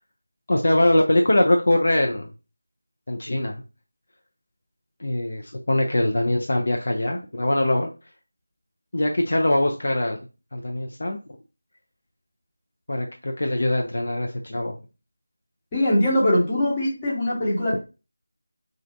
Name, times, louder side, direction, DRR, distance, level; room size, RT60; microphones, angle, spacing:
voice 1, 0.5-2.3 3.1-3.5 5.0-7.9 8.9-10.2 10.5-11.2 12.9-14.8, left 1 dB, 55° left, 2 dB, 0.4 m, -22 dB
voice 2, 15.7-17.8, left 1 dB, 15° left, -7 dB, 0.8 m, -21 dB
2.4 x 2.0 x 2.5 m, 0.31 s
figure-of-eight pair, 165°, 0 cm